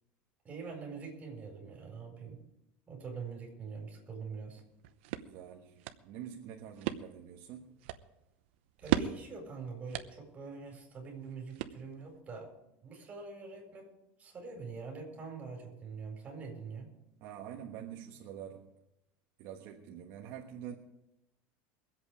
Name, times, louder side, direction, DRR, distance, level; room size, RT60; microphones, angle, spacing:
voice 1, 0.4-2.4 2.9-4.6 8.8-12.5 12.8-13.9 14.2-16.9, right 4 dB, 20° right, -1 dB, 4.7 m, -44 dB
sound 1, 4.6-12.2, right 13 dB, 75° right, 0.8 m, -39 dB
voice 2, 5.2-7.8 17.2-18.7 19.4-20.7, right 9 dB, 55° right, 0 dB, 1.3 m, -46 dB
22.5 x 8.2 x 5.0 m, 0.88 s
cardioid pair, 155°, 6 cm